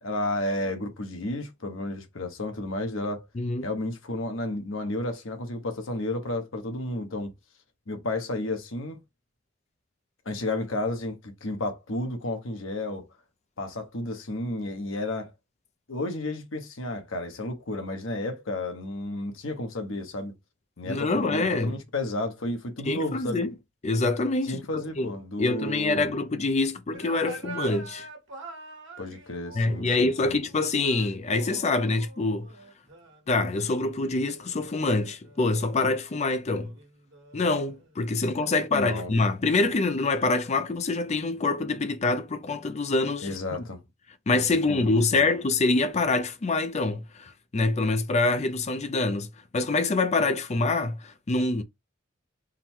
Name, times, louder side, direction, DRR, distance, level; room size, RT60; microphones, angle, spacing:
voice 1, 0.0-3.2 3.6-7.3 7.9-9.0 10.2-13.1 13.6-15.3 15.9-20.3 20.8-23.4 24.4-26.1 29.0-30.4 38.7-39.1 43.2-43.8 44.3-45.3, left 2 dB, 85° left, 1.0 m, -32 dB
voice 2, 3.3-3.7 20.9-21.7 22.8-23.5 23.8-25.1 25.4-28.1 29.5-32.5 33.3-36.7 37.3-43.3 44.3-51.6, left 3 dB, 35° left, 0.5 m, -25 dB
sound 1, 26.9-35.7 36.5-38.0 38.4-41.4, right 3 dB, 65° right, 1.3 m, -46 dB
3.8 x 2.2 x 4.4 m
head